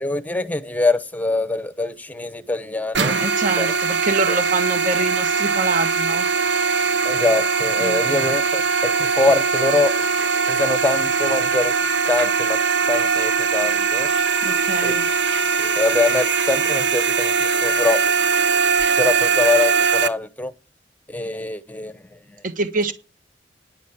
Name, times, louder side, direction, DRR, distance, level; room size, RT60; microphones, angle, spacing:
voice 1, 0.0-3.2 3.6-3.7 7.0-9.9 10.5-11.7 12.0-12.6 12.9-14.1 14.8-14.9 15.6-18.0 19.0-20.5 21.1-22.0, left 3 dB, 10° left, 0.9 m, -23 dB
sound 1, 2.9-20.1, right 5 dB, 80° right, 0.9 m, -21 dB
voice 2, 3.2-6.3 7.8-8.0 14.4-15.1 22.4-22.9, right 3 dB, 50° right, 1.4 m, -25 dB
10.5 x 6.3 x 8.6 m
head